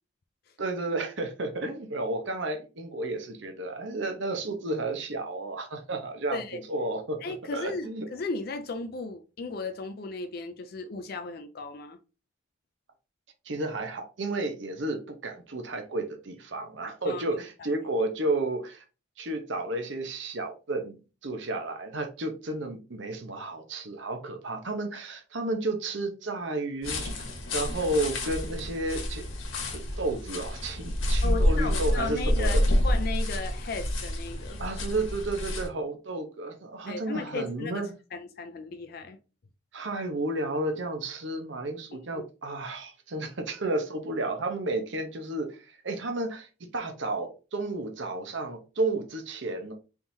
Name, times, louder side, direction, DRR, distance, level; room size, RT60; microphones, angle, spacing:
voice 1, 0.6-8.1 13.4-18.8 19.2-21.0 21.2-29.2 29.7-32.6 34.6-37.9 39.7-49.7, right 2 dB, 65° right, 0.8 m, -32 dB
voice 2, 6.3-6.6 7.2-12.0 17.1-17.2 17.6-17.7 31.2-34.6 36.9-37.8 38.1-39.2 42.1-42.2, left 3 dB, 50° left, 0.4 m, -35 dB
sound 1, 26.8-35.7, left 1 dB, 90° left, 1.3 m, -28 dB
4.4 x 3.6 x 2.7 m
head